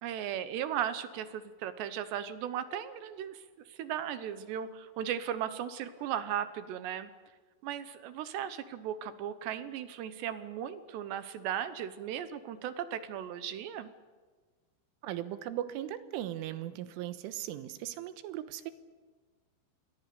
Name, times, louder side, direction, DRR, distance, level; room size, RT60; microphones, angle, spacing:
voice 1, 0.0-3.4 3.7-7.1 7.6-13.9, right 10 dB, 75° right, 12 dB, 2.9 m, -36 dB
voice 2, 15.0-18.7, right 12 dB, 90° right, 11 dB, 3.7 m, -38 dB
28.0 x 21.5 x 6.8 m, 1.4 s
omnidirectional pair, 5.6 m